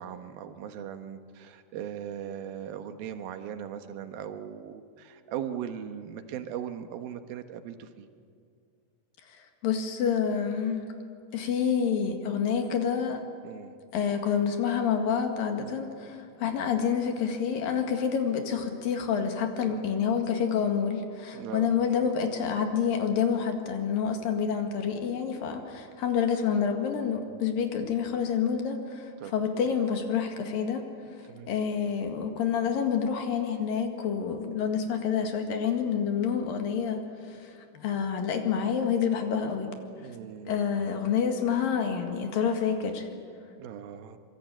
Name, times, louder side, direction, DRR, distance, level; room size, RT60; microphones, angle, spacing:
voice 1, 0.0-8.1 13.4-13.8 15.7-15.8 16.4-16.6 19.7-19.9 21.3-21.7 25.4-25.7 27.3-27.5 29.2-29.7 31.3-31.5 40.0-40.6 43.6-44.2, right 9 dB, 70° right, 8 dB, 2.9 m, -39 dB
voice 2, 9.3-10.9 11.3-13.2 13.9-30.8 31.2-39.7 40.5-43.1, left 7 dB, 65° left, 5 dB, 3.5 m, -28 dB
25.5 x 23.5 x 9.0 m, 2.3 s
omnidirectional pair, 4.7 m